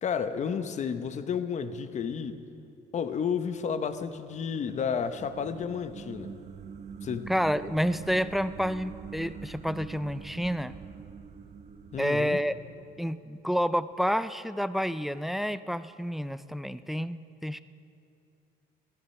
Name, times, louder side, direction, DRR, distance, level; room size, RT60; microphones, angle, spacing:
voice 1, 0.0-2.4 2.9-6.3 7.0-7.3 11.9-12.4, left 7 dB, 45° left, 11 dB, 0.9 m, -31 dB
sound 1, 3.9-13.1, right 6 dB, 45° right, 0.8 m, -45 dB
voice 2, 7.3-10.8 12.0-12.6 13.0-17.6, equal, ahead, 14 dB, 0.4 m, -29 dB
14.5 x 14.0 x 5.8 m, 2.6 s
cardioid pair, 110°, 17 cm